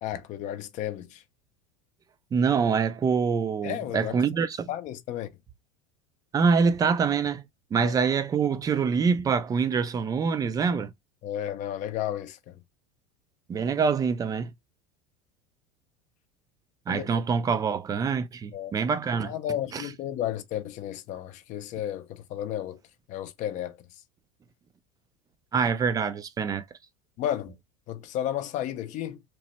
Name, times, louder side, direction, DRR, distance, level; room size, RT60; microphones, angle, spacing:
voice 1, 0.0-1.2 3.6-4.2 4.7-5.3 7.8-8.0 10.7-10.8 11.2-12.6 16.9-17.2 18.5-18.7 19.2-22.8 23.1-24.0 27.2-27.6 27.9-29.2, left 11 dB, 45° left, 0.5 m, -33 dB
voice 2, 2.3-4.7 6.3-7.4 7.7-10.9 13.5-14.5 16.9-19.3 19.7-19.8 25.5-26.6, right 5 dB, 20° right, 0.4 m, -25 dB
2.9 x 2.1 x 3.0 m
supercardioid pair, 105°, 17 cm